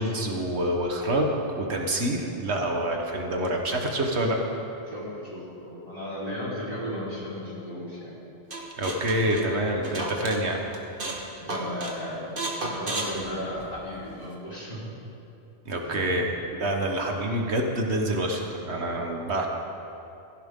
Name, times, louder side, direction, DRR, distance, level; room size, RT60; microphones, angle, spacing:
voice 1, 0.0-4.4 8.8-10.6 15.6-19.5, right 1 dB, 70° right, 1 dB, 1.6 m, -27 dB
voice 2, 4.9-8.1 11.4-14.8 15.8-16.2, left 1 dB, 35° left, -8 dB, 4.2 m, -35 dB
sound 1, 8.5-10.4 10.7-11.2 11.5-12.0 12.4-14.0, right 2 dB, 50° right, 1.7 m, -32 dB
16.5 x 15.0 x 3.7 m, 2.8 s
omnidirectional pair, 1.2 m